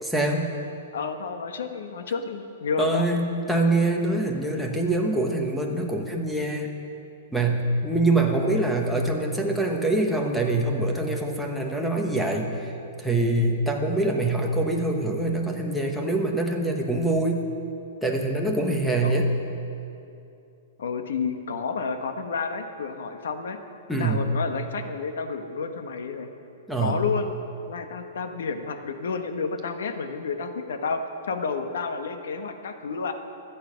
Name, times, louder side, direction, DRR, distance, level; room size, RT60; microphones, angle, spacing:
voice 1, 0.0-0.5 2.8-6.7 7.3-12.7 13.0-17.4 18.0-19.3 23.9-24.2 26.7-27.0, right 2 dB, ahead, 1 dB, 1.1 m, -24 dB
voice 2, 0.9-3.0 19.0-19.3 20.8-23.6 24.0-26.3 26.8-27.3 27.7-33.1, left 5 dB, 85° left, 6 dB, 1.4 m, -30 dB
25.5 x 8.7 x 5.2 m, 2.7 s
hypercardioid pair, 170°, 0 cm